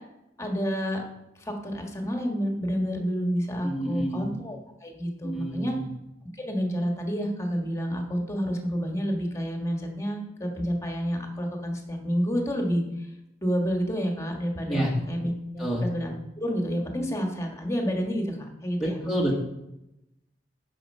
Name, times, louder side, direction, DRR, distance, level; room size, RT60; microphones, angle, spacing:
voice 1, 0.4-1.0 1.4-5.7 6.4-13.1 13.4-16.1 16.4-19.1, equal, 15° left, 2 dB, 1.6 m, -29 dB
voice 2, 3.6-4.3 5.2-5.8 14.7-14.9 15.6-15.9 18.8-19.4, right 1 dB, ahead, -3 dB, 1.5 m, -28 dB
9.9 x 5.9 x 5.5 m, 0.89 s
head